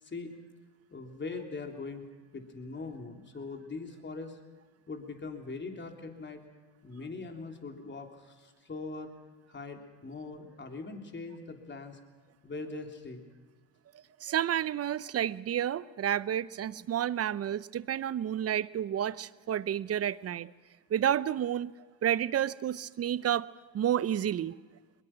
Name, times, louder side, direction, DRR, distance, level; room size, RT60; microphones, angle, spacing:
voice 1, 0.0-0.3 0.9-2.0 2.3-4.4 4.9-6.4 6.8-9.1 9.5-12.0 12.4-13.2, left 3 dB, 25° left, 4 dB, 3.4 m, -41 dB
voice 2, 14.2-20.5 20.9-21.7 22.0-23.5 23.7-24.5, right 10 dB, 35° right, 19 dB, 0.7 m, -30 dB
22.0 x 21.0 x 6.0 m, 1.4 s
hypercardioid pair, 70°, 41 cm